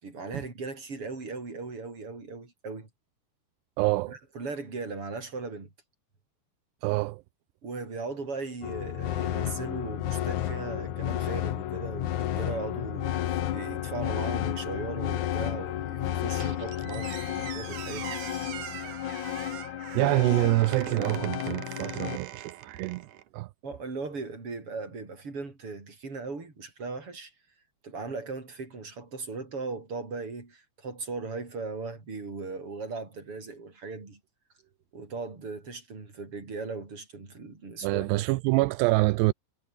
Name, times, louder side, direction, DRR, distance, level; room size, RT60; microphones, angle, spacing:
voice 1, 0.0-2.9 4.1-5.7 7.6-18.2 23.6-27.3 27.8-34.2 34.9-38.2, right 4 dB, 30° right, 6.5 m, -38 dB
voice 2, 3.8-4.2 6.8-7.2 19.9-23.1 23.3-23.5 37.8-39.3, right 21 dB, 85° right, 2.5 m, -26 dB
sound 1, 8.6-22.2, left 12 dB, 65° left, 1.9 m, -32 dB
Squeak, 16.4-23.3, right 12 dB, 65° right, 2.1 m, -42 dB
omnidirectional pair, 5.3 m